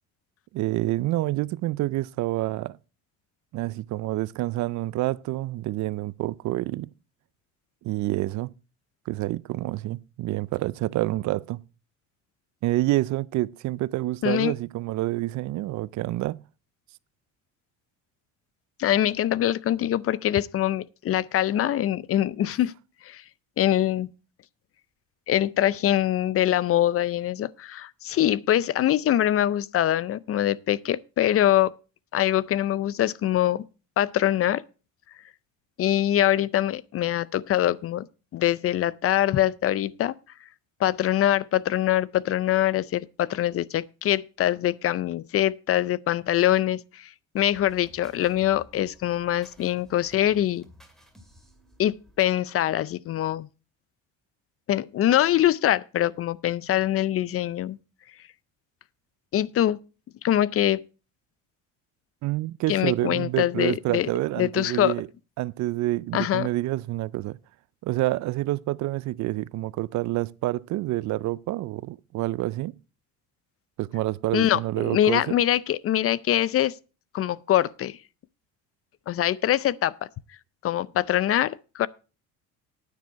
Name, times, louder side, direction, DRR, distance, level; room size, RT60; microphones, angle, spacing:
voice 1, 0.5-2.8 3.5-6.9 7.8-8.5 9.1-11.6 12.6-16.4 62.2-65.1 65.4-67.4 67.8-72.8 73.8-75.4, right 17 dB, 60° right, 0.4 m, -28 dB
voice 2, 14.2-14.5 18.8-22.7 23.0-23.2 23.6-24.1 25.3-31.7 32.1-33.6 34.0-34.6 35.8-38.1 38.3-40.1 40.8-47.1 47.3-50.6 51.8-53.5 54.7-57.8 59.3-59.8 60.2-60.8 62.7-64.1 64.4-64.9 66.1-66.5 74.3-76.7 77.1-78.0 79.1-79.9 80.6-81.9, left 12 dB, 45° left, 0.5 m, -23 dB
sound 1, 47.4-52.4, left 1 dB, ahead, 2.1 m, -54 dB
9.8 x 9.1 x 4.5 m
cardioid pair, 110°, 33 cm